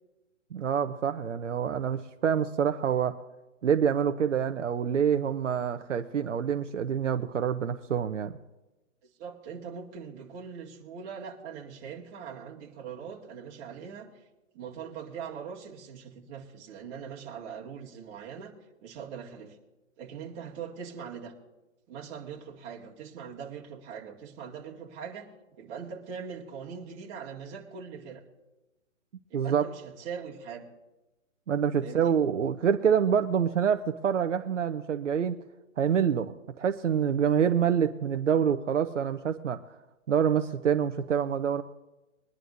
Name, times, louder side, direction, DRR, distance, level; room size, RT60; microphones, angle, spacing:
voice 1, 0.5-3.2 3.6-8.3 29.3-29.6 31.5-35.4 35.8-39.6 40.1-41.6, right 8 dB, 65° right, 7 dB, 0.9 m, -26 dB
voice 2, 9.2-14.1 14.5-18.5 18.8-19.6 20.0-21.3 21.9-25.3 25.6-28.2 29.3-30.6 31.8-32.2, right 7 dB, 25° right, -2 dB, 2.2 m, -41 dB
22.5 x 11.0 x 2.7 m, 1.1 s
hypercardioid pair, 145°, 39 cm